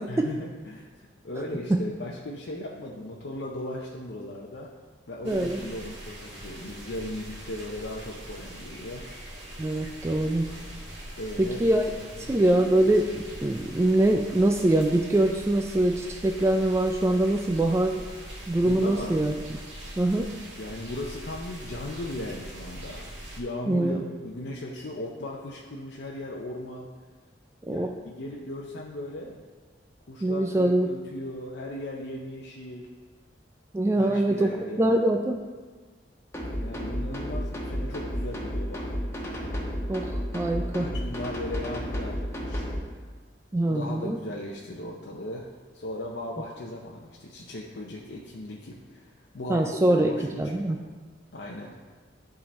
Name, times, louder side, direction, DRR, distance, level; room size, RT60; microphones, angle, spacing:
voice 1, 0.1-4.7 5.1-9.1 11.2-11.6 12.0-12.4 18.6-19.1 20.6-23.0 23.4-26.9 27.7-29.4 30.1-32.9 34.0-34.9 36.5-39.0 40.6-42.7 43.7-45.5 45.7-50.8 51.3-51.8, left 1 dB, 65° left, -2 dB, 0.7 m, -37 dB
voice 2, 5.2-5.6 9.6-10.5 11.4-11.8 12.2-18.1 18.5-19.3 20.0-20.3 23.7-24.0 27.6-27.9 30.2-30.9 33.7-35.4 39.9-40.9 43.5-44.2 49.5-50.1 50.4-50.8, right 1 dB, 15° right, 4 dB, 0.3 m, -24 dB
sound 1, 5.2-23.4, right 1 dB, 75° right, 1.8 m, -42 dB
sound 2, 36.3-42.8, equal, 15° left, 1.2 m, -32 dB
11.0 x 3.8 x 4.2 m, 1.4 s
head